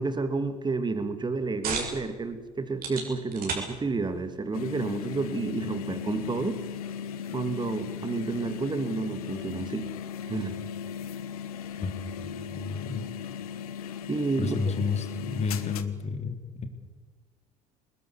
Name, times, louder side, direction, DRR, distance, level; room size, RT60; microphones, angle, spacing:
voice 1, 0.0-6.6 7.3-9.9 10.3-10.6 14.1-14.6, right 3 dB, 25° right, 10 dB, 2.6 m, -30 dB
sound 1, 1.0-16.1, right 5 dB, 50° right, 6.5 m, -43 dB
sound 2, 4.5-15.8, left 8 dB, 75° left, 1.2 m, -37 dB
voice 2, 11.8-13.1 14.4-16.7, left 5 dB, 35° left, 8 dB, 3.3 m, -31 dB
22.5 x 20.5 x 8.3 m, 1.4 s
hypercardioid pair, 65°, 19 cm